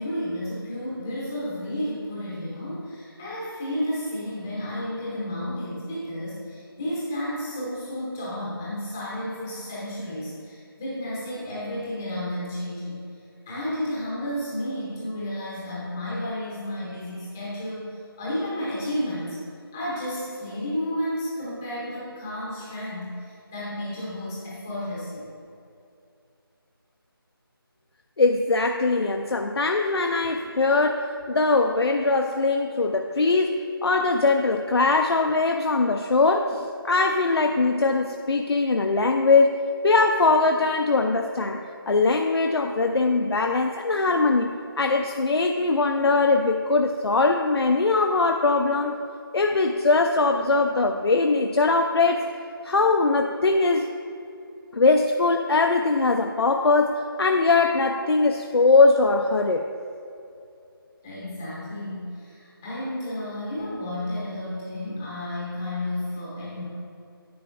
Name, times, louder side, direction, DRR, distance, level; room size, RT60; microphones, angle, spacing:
voice 1, 0.0-13.0 13.5-19.4 19.7-25.3 61.0-66.6, left 1 dB, 5° left, -8 dB, 0.7 m, -32 dB
voice 2, 28.2-44.5 44.8-49.0 49.3-52.3 52.6-53.9 54.7-59.6, left 3 dB, 85° left, 4 dB, 0.5 m, -21 dB
10.0 x 7.7 x 2.5 m, 2.6 s
figure-of-eight pair, 175°, 13 cm